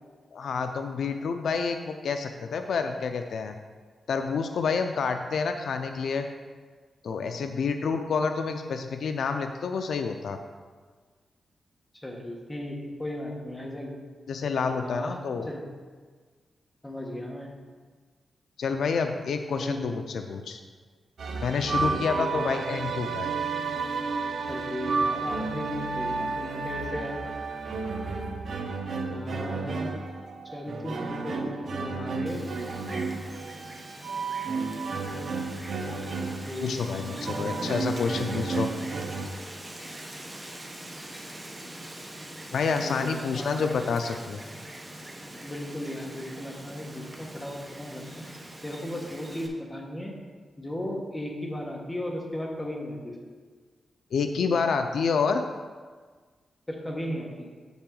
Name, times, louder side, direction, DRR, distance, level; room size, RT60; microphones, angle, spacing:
voice 1, 0.3-3.6 4.1-6.3 7.0-10.4 14.3-15.5 18.6-20.6 21.4-23.3 36.6-38.7 42.5-44.4 54.1-55.4, left 5 dB, 75° left, 6 dB, 0.4 m, -28 dB
voice 2, 12.0-13.9 14.8-15.1 15.4-15.6 16.8-17.5 19.6-19.9 21.8-22.6 24.5-27.2 29.1-29.9 30.4-32.4 36.5-38.3 42.8-43.8 45.4-48.2 48.6-50.1 50.6-53.2 56.7-57.5, left 1 dB, 10° left, -1 dB, 1.2 m, -36 dB
sound 1, 21.2-39.3, right 4 dB, 60° right, 0.8 m, -32 dB
Wind, 32.3-49.5, right 1 dB, 15° right, 0.9 m, -43 dB
7.6 x 7.1 x 3.9 m, 1.5 s
wide cardioid pair, 160°, 0 cm